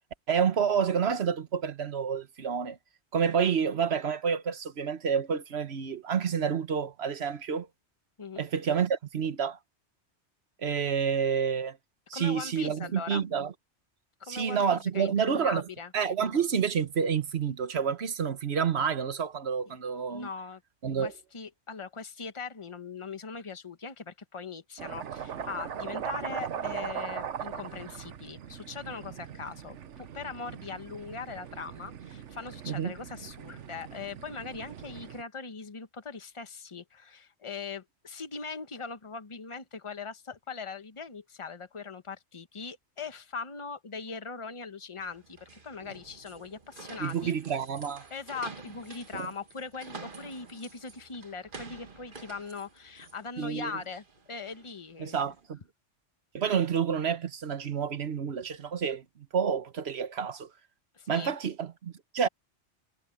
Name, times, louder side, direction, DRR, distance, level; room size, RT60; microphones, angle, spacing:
voice 1, 0.3-2.8 3.1-7.7 8.4-9.6 10.6-11.8 12.1-13.5 14.3-15.6 15.9-20.3 20.8-21.1 32.6-32.9 47.0-48.0 49.1-49.3 53.4-53.7 55.0-55.6 56.3-59.0 59.3-60.5 61.1-62.3, right 7 dB, 65° right, 1.3 m, -29 dB
voice 2, 12.1-13.2 14.2-15.9 19.7-19.8 20.1-20.6 21.0-47.3 48.1-55.3 60.9-61.3, left 5 dB, 25° left, 1.2 m, -40 dB
sound 1, 24.8-35.2, right 8 dB, 90° right, 1.3 m, -40 dB
sound 2, 45.0-55.4, right 4 dB, 45° right, 1.7 m, -49 dB
omnidirectional pair, 1.2 m